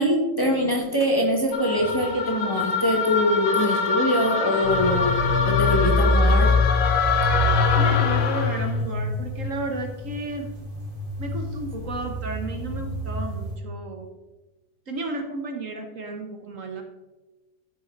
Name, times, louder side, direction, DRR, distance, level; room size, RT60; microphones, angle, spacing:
voice 1, 0.0-5.1 5.4-6.5, equal, 15° left, 0 dB, 1.4 m, -23 dB
sound 1, 1.5-8.8, left 5 dB, 65° left, 1.1 m, -25 dB
sound 2, 4.6-13.6, left 3 dB, 35° right, 2.2 m, -25 dB
voice 2, 7.7-10.5 11.2-14.1 14.9-16.8, right 2 dB, 55° right, 4 dB, 1.3 m, -33 dB
13.0 x 5.5 x 3.9 m, 1.1 s
omnidirectional pair, 1.7 m